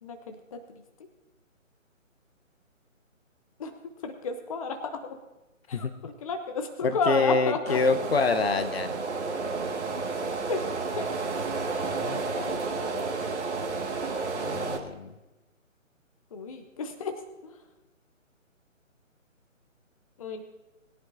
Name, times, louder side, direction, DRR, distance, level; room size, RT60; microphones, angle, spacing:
voice 1, 0.0-0.8 3.6-3.7 4.0-5.2 5.7-7.8 10.5-10.7 11.0-11.1 12.3-13.0 16.3-17.2 17.4-17.6 20.2-20.4, left 4 dB, 25° left, 7 dB, 0.9 m, -32 dB
voice 2, 6.8-9.0 11.9-12.2 14.3-15.1, left 4 dB, 50° left, 11 dB, 0.9 m, -26 dB
sound 1, 7.7-14.8, right 4 dB, 55° right, 2.0 m, -31 dB
20.5 x 10.5 x 2.7 m, 1.1 s
figure-of-eight pair, 150°, 40 cm